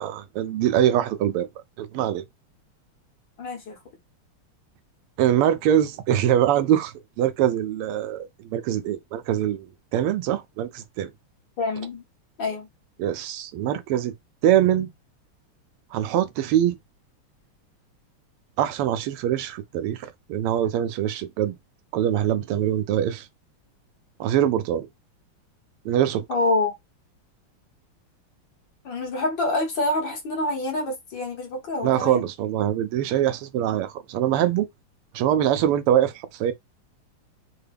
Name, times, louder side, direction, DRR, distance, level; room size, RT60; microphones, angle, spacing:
voice 1, 0.0-1.5 1.8-2.2 5.2-11.1 13.0-14.1 14.4-14.9 15.9-16.8 18.6-21.6 21.9-23.3 24.2-24.9 25.8-26.2 31.8-34.7 35.1-36.5, right 11 dB, 90° right, 1.5 m, -23 dB
voice 2, 3.4-3.8 11.6-12.0 12.4-12.7 26.3-26.7 28.9-32.2, left 2 dB, 60° left, 1.9 m, -26 dB
4.6 x 2.2 x 3.4 m
omnidirectional pair, 2.4 m